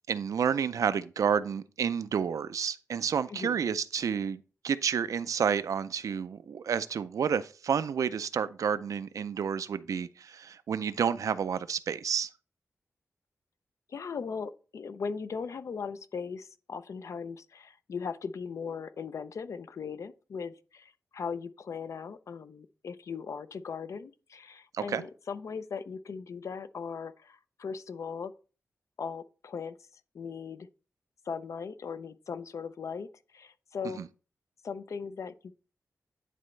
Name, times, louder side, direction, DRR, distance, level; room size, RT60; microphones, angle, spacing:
voice 1, 0.1-12.3 24.7-25.0 33.9-34.1, right 7 dB, 85° right, 0.4 m, -30 dB
voice 2, 13.9-28.3 29.0-29.7 30.1-30.7 31.3-33.1 33.3-34.0 34.6-35.5, left 5 dB, 65° left, 0.5 m, -38 dB
10.0 x 4.2 x 3.2 m
wide cardioid pair, 150°, 6 cm